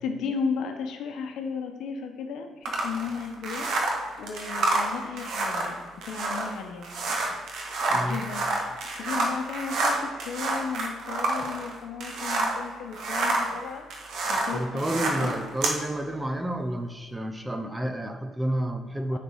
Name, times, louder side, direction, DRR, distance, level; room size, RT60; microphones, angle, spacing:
voice 1, 0.0-3.7 4.2-5.8 6.0-6.9 7.9-8.5 9.0-13.9 14.3-15.4 19.1-19.2, left 6 dB, 75° left, 5 dB, 1.0 m, -34 dB
sound 1, 2.6-12.6 12.9-15.8, right 2 dB, 75° right, 1.4 m, -28 dB
voice 2, 7.9-8.3 11.4-11.5 14.5-19.2, right 1 dB, 10° right, 7 dB, 0.8 m, -30 dB
9.2 x 4.4 x 5.6 m, 1.5 s
cardioid pair, 85°, 0 cm